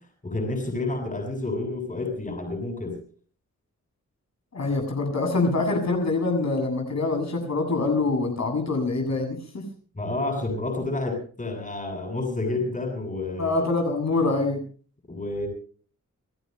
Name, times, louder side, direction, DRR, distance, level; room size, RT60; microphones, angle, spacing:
voice 1, 0.2-3.0 9.9-13.6 15.1-15.5, left 2 dB, 25° left, 4 dB, 7.9 m, -29 dB
voice 2, 4.5-9.6 13.4-14.6, left 3 dB, 60° left, 2 dB, 7.9 m, -25 dB
29.5 x 20.0 x 2.3 m, 0.43 s
wide cardioid pair, 160°, 30 cm